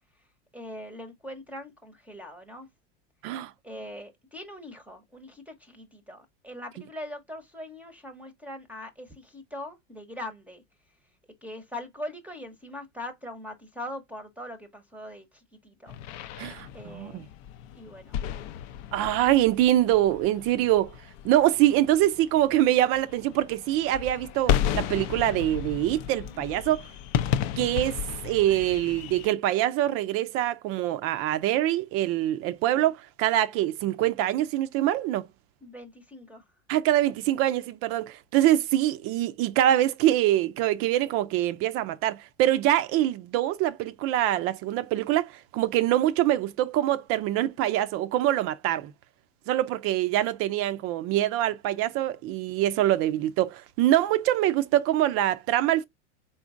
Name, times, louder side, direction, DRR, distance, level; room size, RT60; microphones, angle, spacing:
voice 1, 0.5-2.7 3.6-10.6 11.4-16.0 16.7-17.3 17.7-18.2 26.1-26.4 32.7-32.9 35.6-36.4, left 1 dB, 5° right, 0.8 m, -41 dB
sound 1, 15.9-29.3, left 10 dB, 50° left, 0.5 m, -33 dB
voice 2, 16.4-17.2 18.9-20.9 21.2-26.9 27.6-35.3 36.7-48.9 49.5-55.8, right 13 dB, 40° right, 0.5 m, -24 dB
4.2 x 3.8 x 2.5 m
hypercardioid pair, 105°, 35 cm